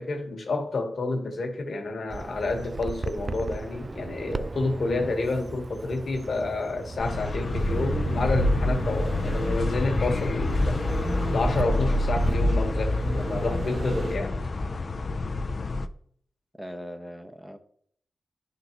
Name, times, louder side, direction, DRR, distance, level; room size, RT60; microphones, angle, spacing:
voice 1, 0.0-10.8 11.3-14.4, left 3 dB, 70° left, 1.2 m, -29 dB
Bird vocalization bird call bird song, 2.1-12.3, right 3 dB, 35° right, 0.3 m, -36 dB
sound 1, 7.0-15.9, left 2 dB, 55° left, 0.4 m, -28 dB
sound 2, 7.5-14.2, right 1 dB, 55° right, 1.0 m, -31 dB
voice 2, 16.6-17.6, equal, 5° right, 0.8 m, -39 dB
11.0 x 3.8 x 2.9 m
cardioid pair, 65°, 0 cm